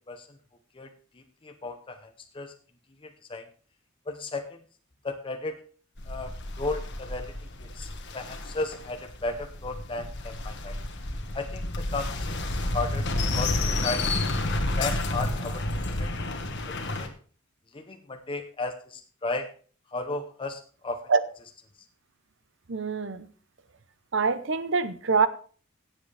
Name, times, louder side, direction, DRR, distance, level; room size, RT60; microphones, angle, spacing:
voice 1, 1.1-2.5 3.0-3.5 4.1-4.6 5.0-5.6 6.1-7.3 7.6-7.9 8.1-10.8 11.3-13.1 13.3-14.2 14.7-15.6 15.9-16.1 17.0-17.1 17.7-19.5 19.9-21.1 21.4-21.5, left 2 dB, 25° left, 0.7 m, -35 dB
sound 1, 6.0-17.1, left 2 dB, 55° left, 1.5 m, -30 dB
voice 2, 22.7-23.3 24.1-25.3, right 5 dB, 60° right, 0.8 m, -24 dB
16.5 x 7.6 x 3.4 m
head